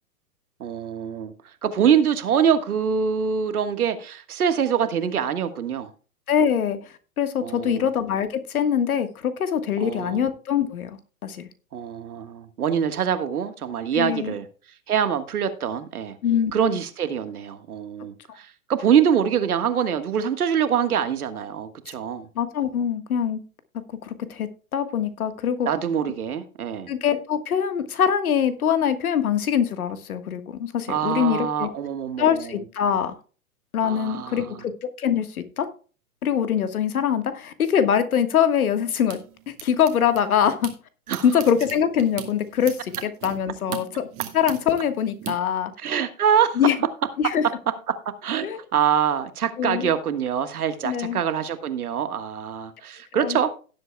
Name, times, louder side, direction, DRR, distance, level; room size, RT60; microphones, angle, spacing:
voice 1, 0.6-1.3 1.6-5.9 7.4-7.8 9.8-10.3 11.7-14.5 14.9-16.2 16.5-22.3 25.6-26.9 30.9-32.6 33.8-34.6 41.1-41.2 45.8-46.6 47.9-53.6, right 8 dB, 70° right, 1.6 m, -24 dB
voice 2, 6.3-11.5 13.9-14.4 16.2-16.5 18.3-18.4 22.3-23.4 24.0-25.7 26.9-31.7 32.2-33.1 33.7-35.7 36.2-39.2 39.5-40.7 41.2-44.1 44.3-45.7 46.5-46.8 47.2-47.4 48.4-48.6 49.6-49.9 50.8-51.2 53.1-53.4, left 8 dB, 70° left, 1.6 m, -23 dB
sound 1, 38.4-40.7 41.1-45.3, right 13 dB, 30° right, 1.7 m, -39 dB
17.5 x 7.9 x 2.3 m
hypercardioid pair, 125°, 45 cm